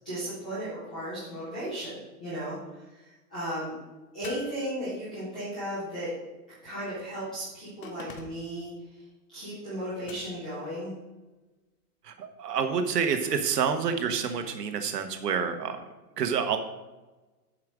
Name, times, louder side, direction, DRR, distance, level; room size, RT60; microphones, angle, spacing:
voice 1, 0.0-3.8 4.1-6.1 6.6-10.9, right 1 dB, 5° left, -13 dB, 0.4 m, -36 dB
sound 1, 4.2-5.3 7.8-8.6 10.0-10.6 12.9-13.6, left 4 dB, 35° left, 1.0 m, -46 dB
voice 2, 12.0-15.8 16.2-16.6, right 6 dB, 85° right, 7 dB, 1.3 m, -28 dB
7.4 x 5.1 x 6.1 m, 1.1 s
hypercardioid pair, 165°, 47 cm